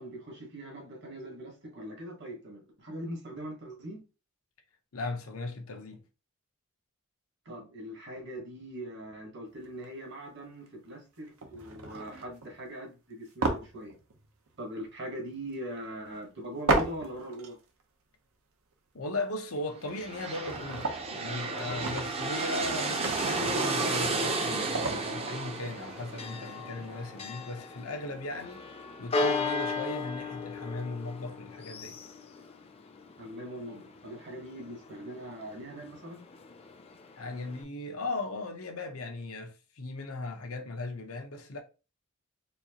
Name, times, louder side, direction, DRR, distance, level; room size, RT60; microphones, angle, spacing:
voice 1, 0.0-4.0 7.4-14.0 14.6-17.6 33.2-36.2, right 1 dB, 55° right, 1.3 m, -41 dB
voice 2, 4.9-6.0 18.9-28.6 29.0-32.0 37.2-41.6, left 2 dB, 85° left, 0.8 m, -38 dB
sound 1, 9.6-9.9 10.7-10.9 11.4-12.5 13.4-14.6 14.9-15.0 16.7-17.5 17.8-17.9 19.6-19.7 19.9-21.2 21.6-25.1, right 2 dB, 85° right, 0.8 m, -34 dB
sound 2, 19.8-27.5, right 3 dB, 30° right, 0.6 m, -33 dB
Church bell, 22.6-37.6, left 3 dB, 30° left, 0.5 m, -38 dB
4.3 x 2.4 x 2.9 m
head